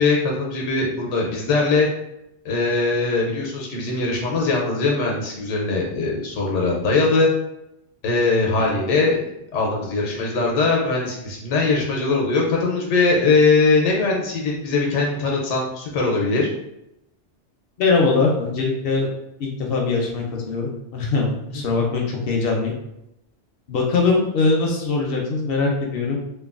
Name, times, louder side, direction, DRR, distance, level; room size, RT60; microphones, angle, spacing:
voice 1, 0.0-1.9 2.4-7.3 8.0-9.2 9.5-16.5 21.5-21.6, left 3 dB, 90° left, -1 dB, 0.9 m, -21 dB
voice 2, 17.8-19.1 19.4-22.7 23.7-26.2, left 3 dB, 65° left, 0 dB, 0.7 m, -21 dB
3.1 x 2.2 x 2.4 m, 0.85 s
omnidirectional pair, 1.2 m